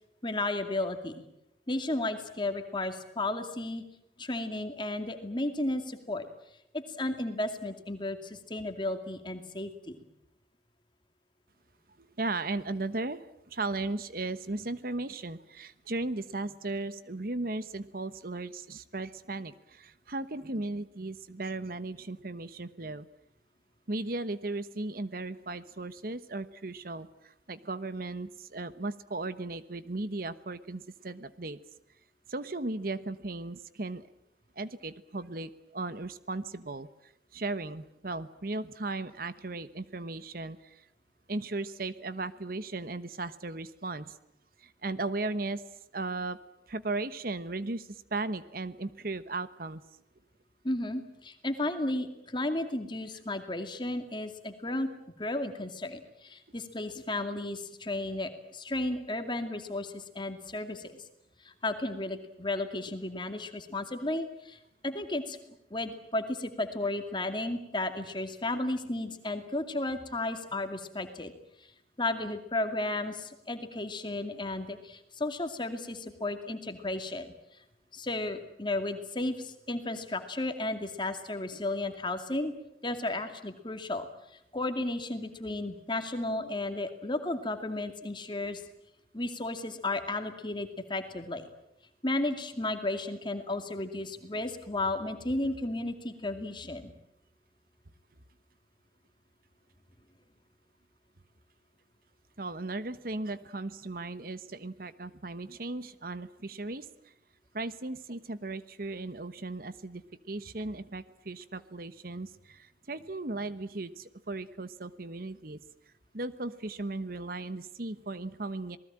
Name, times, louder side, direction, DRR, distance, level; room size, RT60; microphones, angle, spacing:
voice 1, 0.2-1.2 1.7-3.8 4.2-6.3 6.7-10.1 50.6-54.9 55.2-61.0 61.4-64.6 64.8-65.4 65.7-71.3 72.0-77.3 77.9-82.5 82.8-84.1 84.5-88.6 89.1-91.4 92.0-96.9, left 2 dB, 25° left, 7 dB, 2.4 m, -33 dB
voice 2, 12.0-13.2 13.5-23.1 23.9-31.6 32.3-34.1 34.6-40.9 41.3-44.2 44.6-45.6 45.9-46.4 46.7-49.8 102.4-106.9 107.5-110.0 110.3-115.6 116.1-118.8, right 2 dB, 55° right, 14 dB, 1.1 m, -36 dB
27.5 x 19.5 x 8.9 m, 0.83 s
head